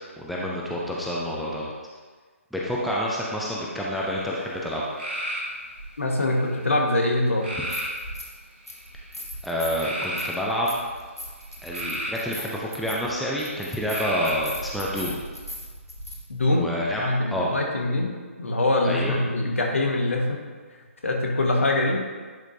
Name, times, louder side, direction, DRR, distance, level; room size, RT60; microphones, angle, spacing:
voice 1, 0.2-1.7 2.5-4.8 9.4-10.8 11.6-15.2 16.6-17.0 17.3-17.5 18.8-19.2, equal, ahead, -5 dB, 0.5 m, -28 dB
sound 1, 4.0-4.4 5.0-5.5 6.2-6.7 7.4-8.0 8.7-9.0 9.8-10.3 11.4-12.2 13.9-14.6, equal, 50° right, 1.9 m, -32 dB
sound 2, 5.8-5.9 7.4-8.4 8.7-16.2, equal, 85° left, 1.5 m, -39 dB
voice 2, 6.0-7.5 16.3-16.7 17.0-18.1 18.4-20.4 21.0-22.0, left 2 dB, 65° left, 0 dB, 1.4 m, -23 dB
10.5 x 5.1 x 2.7 m, 1.5 s
figure-of-eight pair, 140°, 8 cm